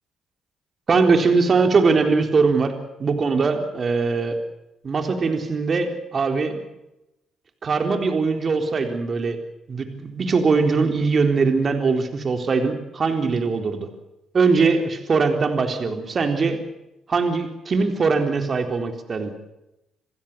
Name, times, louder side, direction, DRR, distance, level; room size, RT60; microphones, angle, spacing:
voice 1, 0.9-2.7 3.0-4.4 4.8-6.6 7.6-9.4 9.7-13.9 14.3-16.6 17.1-19.3, right 4 dB, 45° right, 5 dB, 3.9 m, -21 dB
28.0 x 16.0 x 8.5 m, 0.91 s
supercardioid pair, 60°, 0 cm